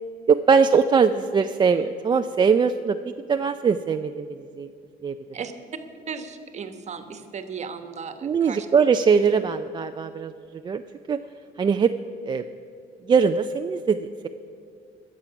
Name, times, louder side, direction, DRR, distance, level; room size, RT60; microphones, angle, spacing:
voice 1, 0.3-4.7 5.0-5.1 8.2-10.3 10.6-10.8 11.1-11.2 11.6-11.9 12.2-12.5 13.1-14.3, right 6 dB, 25° right, 7 dB, 0.4 m, -21 dB
voice 2, 6.1-8.7, right 6 dB, 40° right, 8 dB, 1.2 m, -36 dB
21.0 x 7.4 x 5.8 m, 2.5 s
cardioid pair, 110°, 17 cm